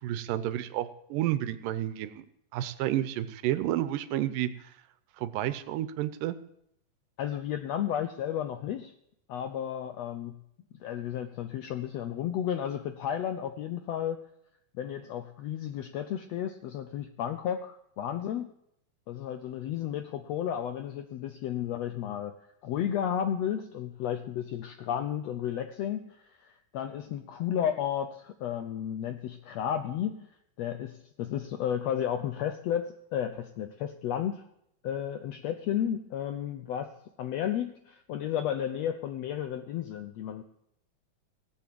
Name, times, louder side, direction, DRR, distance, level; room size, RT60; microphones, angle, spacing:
voice 1, 0.0-2.3 2.5-4.7 5.2-6.4, right 13 dB, 90° right, 13 dB, 2.5 m, -31 dB
voice 2, 7.2-8.9 9.3-10.4 10.8-14.2 14.7-18.5 19.1-22.4 22.6-30.3 30.6-34.4 34.8-40.4, left 9 dB, 85° left, 8 dB, 1.5 m, -33 dB
17.0 x 7.7 x 7.6 m, 0.76 s
omnidirectional pair, 3.7 m